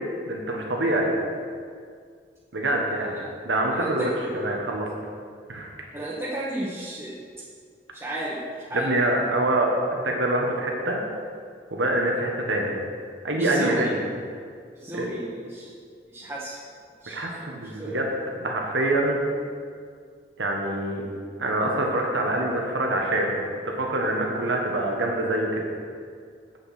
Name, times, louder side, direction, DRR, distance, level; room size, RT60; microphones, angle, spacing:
voice 1, 0.2-1.1 2.5-3.2 3.4-4.9 5.5-5.7 8.7-9.7 10.0-11.0 11.7-12.7 13.2-14.0 14.9-15.1 17.1-18.0 18.4-19.2 20.4-21.0 21.4-23.4 23.6-25.6, right 1 dB, 85° right, 0 dB, 1.2 m, -25 dB
voice 2, 3.7-4.4 5.9-7.2 7.9-8.9 13.4-13.9 14.7-15.7 16.1-16.6 17.0-18.0, right 1 dB, 15° right, -7 dB, 1.1 m, -33 dB
8.3 x 6.6 x 5.7 m, 2.1 s
head